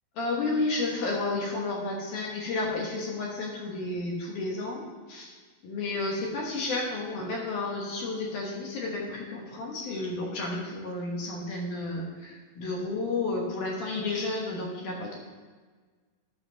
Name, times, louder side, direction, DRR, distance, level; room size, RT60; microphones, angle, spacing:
voice 1, 0.2-5.4 5.6-15.2, left 2 dB, 65° left, -2 dB, 2.7 m, -32 dB
11.0 x 4.2 x 6.4 m, 1.5 s
omnidirectional pair, 4.0 m